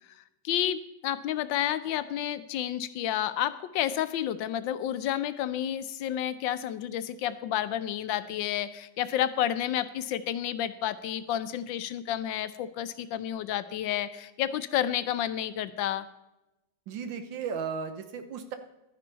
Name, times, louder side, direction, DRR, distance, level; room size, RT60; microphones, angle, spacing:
voice 1, 0.2-16.1, left 11 dB, 85° left, 13 dB, 1.4 m, -30 dB
voice 2, 16.9-18.6, right 6 dB, 90° right, 9 dB, 1.8 m, -35 dB
12.0 x 10.0 x 4.1 m, 0.92 s
omnidirectional pair, 2.0 m